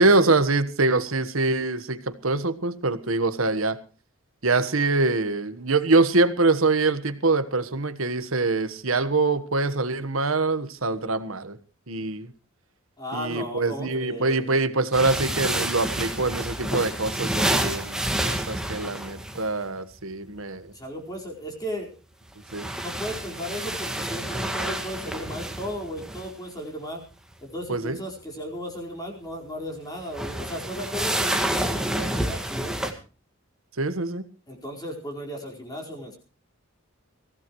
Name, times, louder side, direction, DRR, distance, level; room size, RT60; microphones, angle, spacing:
voice 1, 0.0-3.8 4.4-11.6 11.9-12.3 13.1-20.7 22.5-22.7 27.7-28.0 33.8-34.3, right 3 dB, 75° right, 12 dB, 1.4 m, -24 dB
voice 2, 13.0-14.5 20.7-21.9 22.8-27.0 27.4-32.9 34.5-36.2, equal, 20° left, -1 dB, 4.7 m, -35 dB
sound 1, 14.9-19.5 22.3-26.3 30.0-32.9, right 1 dB, 5° right, 1.8 m, -28 dB
22.5 x 16.5 x 3.1 m, 0.36 s
head